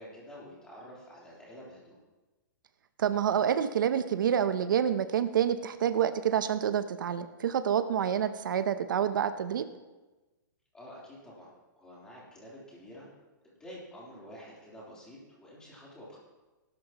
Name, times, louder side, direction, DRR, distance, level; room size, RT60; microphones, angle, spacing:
voice 1, 0.0-1.9 10.7-11.5 11.8-13.1 13.4-16.2, equal, 5° left, -6 dB, 3.5 m, -49 dB
voice 2, 3.0-9.6, right 9 dB, 75° right, 11 dB, 0.8 m, -28 dB
19.0 x 12.5 x 3.0 m, 1.2 s
hypercardioid pair, 165°, 11 cm